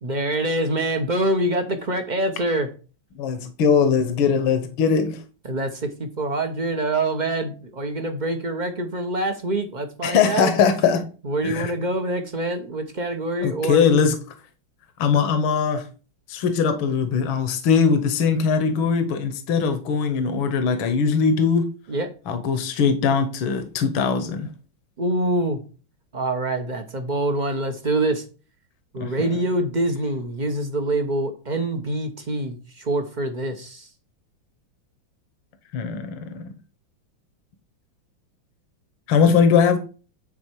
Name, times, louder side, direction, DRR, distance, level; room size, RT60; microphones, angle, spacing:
voice 1, 0.0-2.7 5.4-10.5 11.2-13.9 21.9-22.1 25.0-25.6 26.1-28.2 28.9-33.9, right 1 dB, 40° right, 0.6 m, -25 dB
voice 2, 3.2-5.2 10.0-11.0 11.4-11.7 13.4-14.2 15.0-15.9 16.3-21.7 22.3-24.5 29.0-29.3 35.7-36.4 39.1-39.8, left 6 dB, 75° left, 1.8 m, -20 dB
9.8 x 4.2 x 4.6 m
omnidirectional pair, 2.3 m